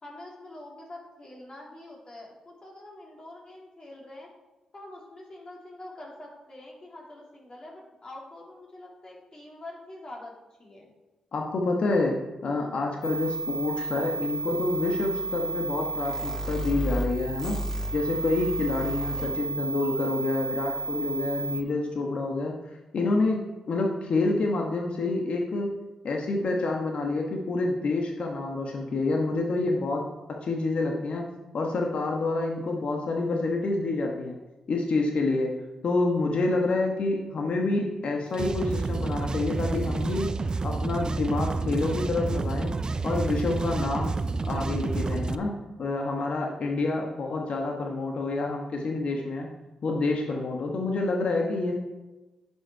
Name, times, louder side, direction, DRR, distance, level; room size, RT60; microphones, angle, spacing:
voice 1, 0.0-4.3 4.7-10.3 10.6-10.9 19.1-19.5, left 1 dB, 40° left, -3 dB, 3.5 m, -45 dB
voice 2, 11.3-12.2 12.4-17.6 17.9-23.4 23.7-25.7 26.0-30.0 30.4-31.3 31.5-34.4 34.7-35.5 35.8-40.3 40.6-42.7 43.0-44.1 44.4-45.5 45.8-49.5 49.8-51.7, left 3 dB, 65° left, 1 dB, 1.3 m, -28 dB
sound 1, 13.0-21.6, right 1 dB, 25° left, 3.1 m, -32 dB
sound 2, 38.3-45.3, right 3 dB, 40° right, 0.6 m, -29 dB
10.5 x 5.7 x 4.7 m, 1.1 s
hypercardioid pair, 40°, 2 cm